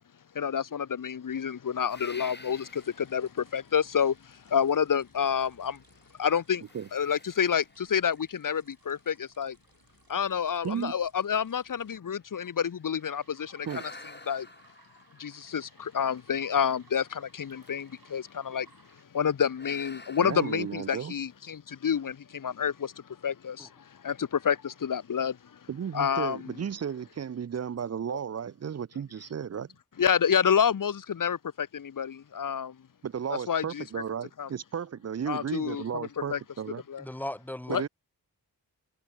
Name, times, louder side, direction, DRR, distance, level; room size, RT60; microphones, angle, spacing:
voice 1, 0.3-5.8 6.2-6.6 6.9-9.6 10.1-13.7 14.3-14.5 15.2-18.7 19.1-25.6 25.9-26.5 28.1-28.2 30.0-32.8 33.3-33.8 34.4-34.5 35.3-36.4 36.9-37.0 37.7-37.8, left 7 dB, 55° left, 0.8 m, -29 dB
sound 1, 1.9-3.2 3.8-3.9 5.2-6.1 6.6-9.0 9.7-9.8 10.3-10.4 10.7-13.0 13.6-16.3 17.5-18.0 18.3-18.7 19.5-21.4, left 2 dB, 25° left, 3.6 m, -51 dB
sound 2, 2.7-12.0 13.0-19.1, right 4 dB, 60° right, 7.4 m, -63 dB
voice 2, 20.2-21.1 25.7-29.7 33.0-36.8 37.7-37.9, right 8 dB, 40° right, 0.5 m, -34 dB
voice 3, 37.0-37.9, left 1 dB, 5° left, 0.5 m, -37 dB
cardioid pair, 50°, 39 cm